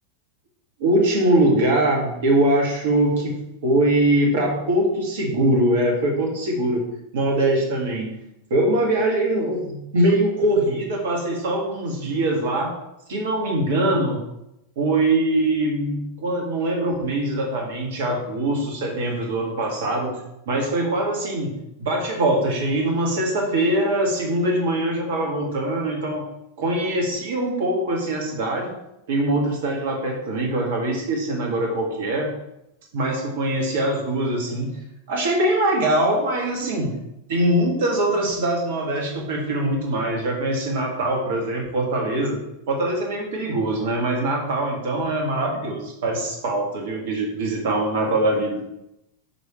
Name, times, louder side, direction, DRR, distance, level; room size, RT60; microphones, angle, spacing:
voice 1, 0.8-3.3 3.6-6.9 7.1-8.1 8.5-12.7 13.1-14.2 14.8-20.1 20.5-26.2 26.6-28.7 29.1-32.3 32.9-34.7 35.1-37.0 37.3-42.4 42.7-48.6, right 1 dB, 55° right, 0 dB, 1.9 m, -22 dB
8.7 x 5.6 x 3.2 m, 0.86 s
figure-of-eight pair, 90°, 0 cm